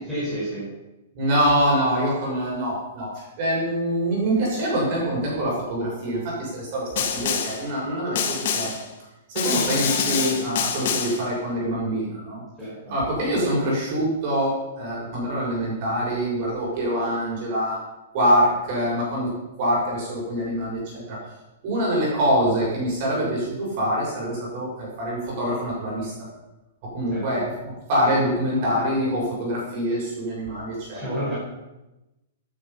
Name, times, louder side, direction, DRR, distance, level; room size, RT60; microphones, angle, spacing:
voice 1, 0.1-0.7 12.6-12.8 27.1-27.3 30.9-31.3, equal, 5° right, -11 dB, 5.4 m, -29 dB
voice 2, 1.1-8.7 9.3-12.4 12.9-17.8 18.1-19.3 19.6-21.2 21.6-26.1 26.8-31.3, equal, 30° right, -4 dB, 6.7 m, -25 dB
Snare drum, 7.0-7.7 8.2-8.9 9.4-11.3, left 7 dB, 45° left, 2.1 m, -26 dB
17.5 x 9.5 x 5.8 m, 0.99 s
hypercardioid pair, 180°, 0 cm